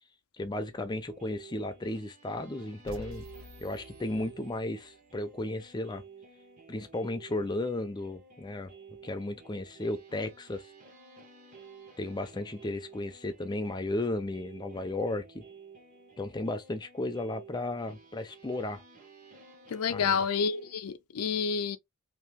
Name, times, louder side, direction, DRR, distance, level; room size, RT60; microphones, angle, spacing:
voice 1, 0.4-3.2 3.6-6.0 6.7-8.7 9.0-10.6 12.0-15.4 16.2-18.8 19.9-20.3, left 1 dB, 20° left, 0.4 m, -34 dB
sound 1, 1.1-20.7, right 5 dB, 35° right, 1.1 m, -53 dB
sound 2, 2.9-4.9, left 2 dB, 70° right, 1.0 m, -49 dB
voice 2, 19.7-21.8, left 6 dB, 90° left, 0.4 m, -29 dB
2.8 x 2.6 x 3.5 m
head